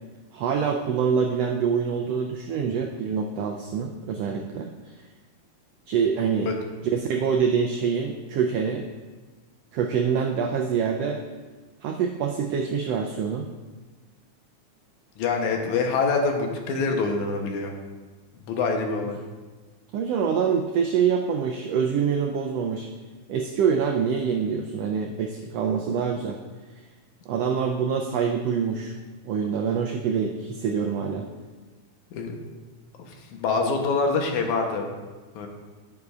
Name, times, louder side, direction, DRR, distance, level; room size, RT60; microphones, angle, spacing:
voice 1, 0.3-4.9 5.9-6.5 6.8-8.9 9.7-11.2 11.8-13.5 19.0-19.1 19.9-22.9 23.3-26.4 27.3-28.9 29.2-31.3, right 6 dB, 85° right, 3 dB, 1.4 m, -25 dB
voice 2, 15.2-17.7 18.5-19.2 32.1-32.4 33.0-34.9 35.4-35.5, left 4 dB, 80° left, 3 dB, 2.3 m, -25 dB
10.5 x 9.6 x 2.4 m, 1.3 s
omnidirectional pair, 3.4 m